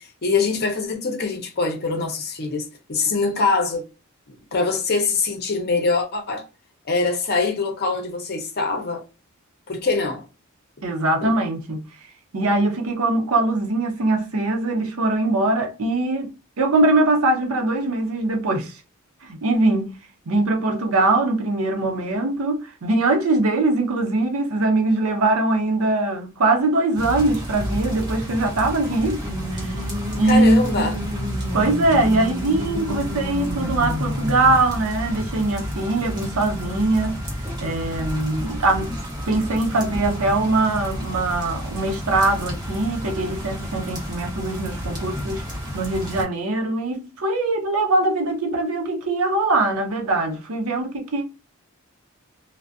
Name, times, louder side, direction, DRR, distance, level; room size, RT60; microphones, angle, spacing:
voice 1, 0.0-3.8 4.3-6.4 6.8-9.0 9.7-10.2 11.2-11.3 30.2-31.1, left 3 dB, 50° left, 0.6 m, -23 dB
voice 2, 10.8-11.8 12.3-16.3 16.6-18.8 19.2-20.0 20.3-29.2 29.5-29.7 30.1-30.8 31.5-37.2 37.6-39.0 39.3-45.5 45.7-51.2, right 2 dB, 80° right, 0.6 m, -22 dB
sound 1, 26.9-46.2, equal, 20° right, 0.8 m, -31 dB
sound 2, 29.2-34.6, left 1 dB, 50° right, 0.9 m, -31 dB
2.5 x 2.1 x 2.4 m
head